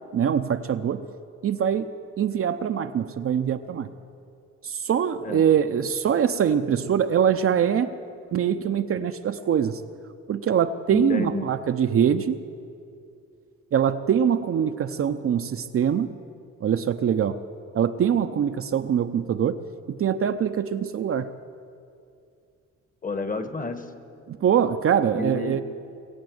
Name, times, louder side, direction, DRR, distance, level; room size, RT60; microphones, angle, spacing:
voice 1, 0.1-1.1 1.4-1.9 2.2-3.9 4.6-8.0 8.3-9.8 10.3-12.4 13.7-16.1 16.6-17.4 17.7-19.6 19.9-21.3 24.3-25.6, right 8 dB, 50° right, 8 dB, 0.6 m, -23 dB
voice 2, 10.9-11.5 23.0-23.8 25.1-25.6, left 3 dB, 25° left, 9 dB, 1.3 m, -30 dB
22.0 x 8.0 x 7.9 m, 2.5 s
cardioid pair, 90°, 30 cm